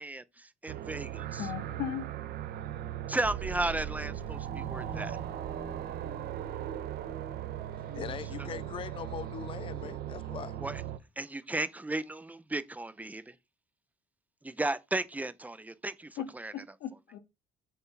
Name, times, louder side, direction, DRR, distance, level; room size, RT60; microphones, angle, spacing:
voice 1, 0.0-1.5 3.1-5.2 10.6-10.8 11.2-13.3 14.4-16.5, right 2 dB, 10° right, 0.7 m, -35 dB
sound 1, 0.7-11.0, right 11 dB, 65° right, 0.9 m, -38 dB
voice 2, 1.4-2.1 16.2-17.2, left 9 dB, 85° left, 1.9 m, -37 dB
sound 2, 4.5-9.4, right 3 dB, 90° right, 3.1 m, -47 dB
voice 3, 7.9-10.6, left 9 dB, 30° left, 0.4 m, -41 dB
6.7 x 4.4 x 5.9 m
cardioid pair, 110°, 17 cm